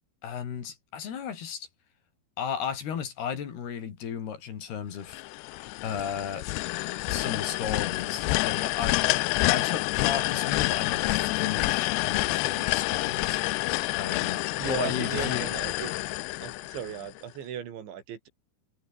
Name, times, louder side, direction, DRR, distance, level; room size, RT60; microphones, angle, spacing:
voice 1, 0.2-1.7 2.4-5.2 5.8-6.5 7.1-9.0 9.5-13.4 13.9-15.5, left 8 dB, 60° left, 4.8 m, -34 dB
sound 1, 5.1-17.2, left 23 dB, 85° left, 2.4 m, -28 dB
voice 2, 14.6-15.9 16.4-18.3, right 9 dB, 75° right, 5.2 m, -36 dB
omnidirectional pair, 5.4 m